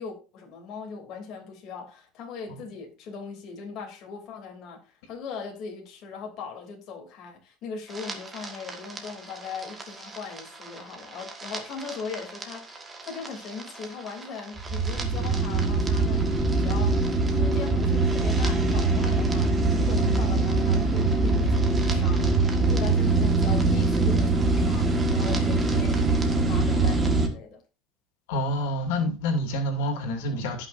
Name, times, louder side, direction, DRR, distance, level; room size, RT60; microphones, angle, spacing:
voice 1, 0.0-22.3 22.7-27.6, left 5 dB, 40° left, 2.8 m, -39 dB
sound 1, 7.9-27.3, right 3 dB, 15° right, 1.5 m, -24 dB
voice 2, 28.3-30.7, left 1 dB, 85° left, 2.4 m, -28 dB
17.5 x 6.0 x 2.6 m
cardioid pair, 175°, 0 cm